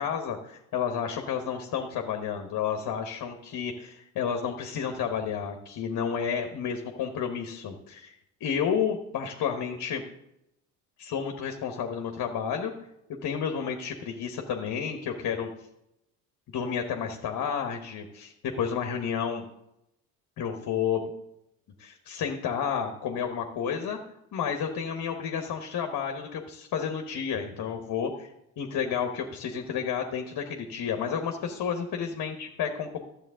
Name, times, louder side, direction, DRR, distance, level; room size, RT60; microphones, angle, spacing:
voice 1, 0.0-8.1 8.4-10.0 11.0-12.7 13.2-15.5 16.5-19.4 20.4-21.1 21.8-24.0 24.3-28.3 28.6-33.0, left 7 dB, 50° left, 4 dB, 1.3 m, -31 dB
12.5 x 7.5 x 3.7 m, 0.84 s
hypercardioid pair, 55°, 44 cm